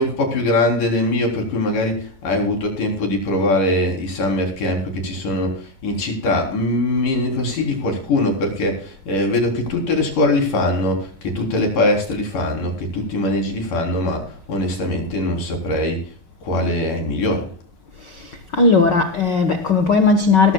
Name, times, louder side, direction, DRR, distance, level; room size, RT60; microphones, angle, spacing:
voice 1, 0.0-16.1 16.4-17.5, left 1 dB, 65° left, 5.2 m, -21 dB
voice 2, 18.6-20.5, left 4 dB, 80° left, 0.9 m, -16 dB
19.0 x 14.0 x 2.3 m
omnidirectional pair, 4.1 m